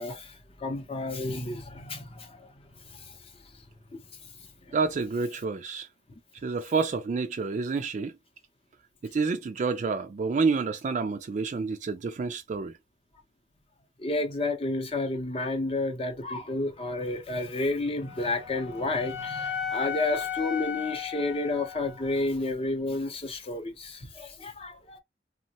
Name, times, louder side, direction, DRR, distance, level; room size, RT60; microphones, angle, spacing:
voice 1, 0.0-2.5 2.9-3.1 3.9-4.0 4.7-4.8 14.0-25.0, left 2 dB, 35° left, 0.6 m, -31 dB
voice 2, 4.7-5.9 6.4-8.1 9.0-12.8, right 4 dB, 45° right, 0.3 m, -28 dB
Wind instrument woodwind instrument, 18.0-22.2, left 8 dB, 75° left, 0.5 m, -35 dB
3.0 x 2.1 x 2.7 m
head